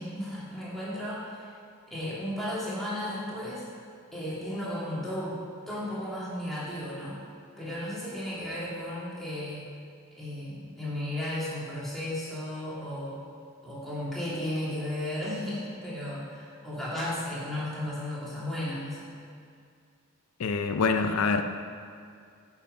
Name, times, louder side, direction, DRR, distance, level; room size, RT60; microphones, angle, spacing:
voice 1, 0.0-1.5 1.9-3.6 4.1-5.4 5.7-7.2 7.6-9.7 10.2-13.2 13.6-19.0, left 1 dB, ahead, -9 dB, 2.2 m, -34 dB
voice 2, 20.4-21.4, left 4 dB, 85° left, 7 dB, 0.5 m, -25 dB
8.7 x 5.7 x 5.4 m, 2.3 s
head